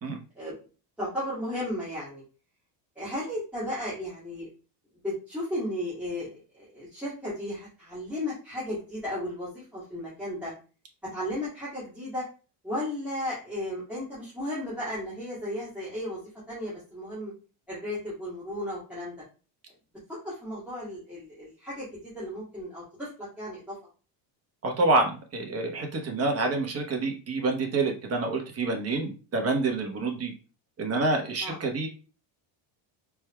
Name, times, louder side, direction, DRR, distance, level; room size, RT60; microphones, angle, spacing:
voice 1, 1.0-2.2 3.0-4.5 5.0-10.5 11.1-12.2 12.6-16.2 16.5-17.3 17.7-19.1 20.2-23.1 23.4-23.8 26.0-26.1 31.4-31.6, left 1 dB, 5° right, -10 dB, 2.1 m, -34 dB
voice 2, 24.6-30.3 30.8-31.9, right 3 dB, 30° right, 3 dB, 1.1 m, -27 dB
4.4 x 3.6 x 2.2 m, 0.35 s
cardioid pair, 120°, 48 cm